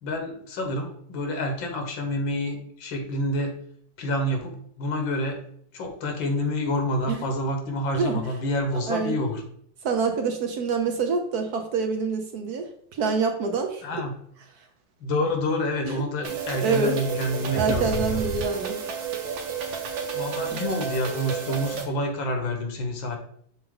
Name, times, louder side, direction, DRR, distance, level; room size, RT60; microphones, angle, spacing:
voice 1, 0.0-3.6 4.0-5.4 5.7-9.4 13.8-14.1 15.0-18.2 20.1-23.2, left 1 dB, 85° left, 4 dB, 1.9 m, -28 dB
voice 2, 8.7-9.1 9.8-14.0 15.9-16.0 16.3-17.0 17.5-18.8 20.5-20.6, right 4 dB, 65° right, 5 dB, 1.1 m, -26 dB
sound 1, 16.2-21.9, right 7 dB, 80° right, 1.7 m, -31 dB
6.6 x 4.1 x 3.8 m, 0.64 s
omnidirectional pair, 2.1 m